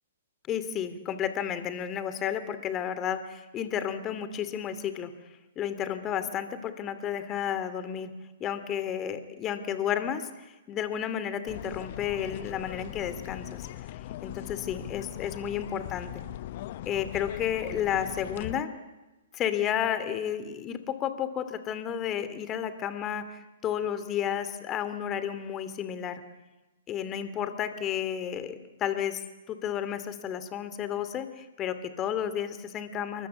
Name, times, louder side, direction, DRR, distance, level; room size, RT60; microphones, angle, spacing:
voice 1, 0.5-5.1 5.6-8.1 8.4-13.7 14.2-16.2 16.9-18.7 19.3-26.2 26.9-33.3, left 9 dB, 25° left, 12 dB, 2.6 m, -32 dB
sound 1, 11.5-18.6, left 14 dB, 45° left, 0.9 m, -40 dB
28.5 x 23.5 x 8.2 m, 1.1 s
figure-of-eight pair, 120°, 0 cm